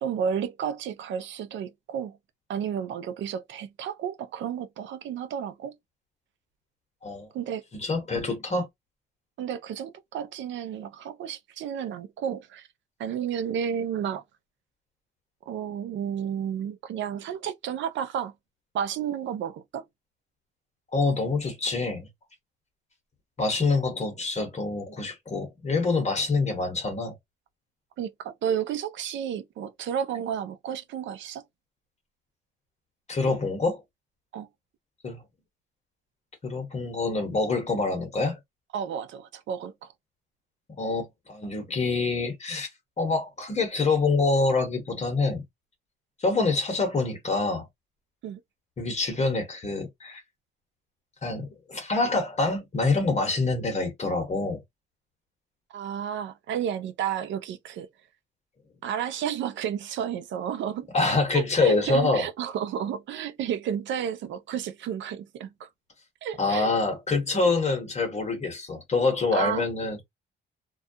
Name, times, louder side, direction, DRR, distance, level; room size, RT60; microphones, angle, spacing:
voice 1, 0.0-2.2 2.5-5.7 7.3-7.6 9.4-12.7 13.0-14.2 15.5-18.3 18.7-19.8 28.0-31.4 34.3-34.5 38.7-39.9 48.2-48.4 55.7-57.9 58.8-65.7 66.2-66.7 69.3-69.7, right 8 dB, 70° right, 0.5 m, -32 dB
voice 2, 7.7-8.7 20.9-22.1 23.4-27.2 33.1-33.8 35.0-35.2 36.4-38.4 40.8-42.7 43.0-45.4 46.2-47.7 48.8-50.2 51.2-54.6 60.9-62.3 66.4-70.0, left 3 dB, 35° left, 1.1 m, -26 dB
2.3 x 2.1 x 2.7 m
cardioid pair, 90°, 20 cm